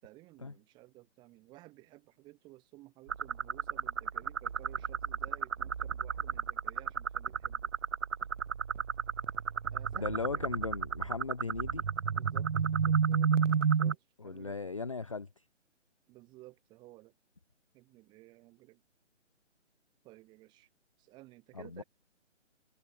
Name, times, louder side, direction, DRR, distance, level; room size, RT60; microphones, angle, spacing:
voice 1, 0.0-7.7 9.7-10.4 12.1-13.5 13.8-14.7 16.1-17.1 17.7-18.8 20.0-20.7 21.0-21.8, right 19 dB, 10° right, 5.2 m, -55 dB
sound 1, 3.1-14.0, right 6 dB, 75° right, 1.2 m, -32 dB
voice 2, 10.0-11.8 14.2-15.4 21.5-21.8, left 4 dB, 25° left, 0.6 m, -37 dB
hypercardioid pair, 170°, 37 cm